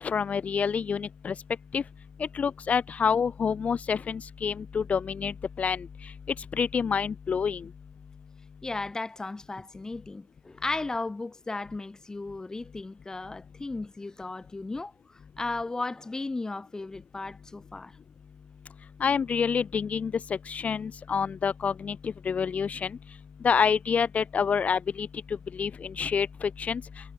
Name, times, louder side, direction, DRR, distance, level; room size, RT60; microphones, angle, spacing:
voice 1, 0.0-1.3 1.7-1.8 2.2-5.9 6.6-7.6 19.0-20.1 20.5-22.9 23.4-25.1 25.6-26.8, left 6 dB, 65° left, 2.0 m, -27 dB
voice 2, 8.6-14.9 15.4-17.9, left 3 dB, 25° left, 3.2 m, -35 dB
wide cardioid pair, 135°, 3 cm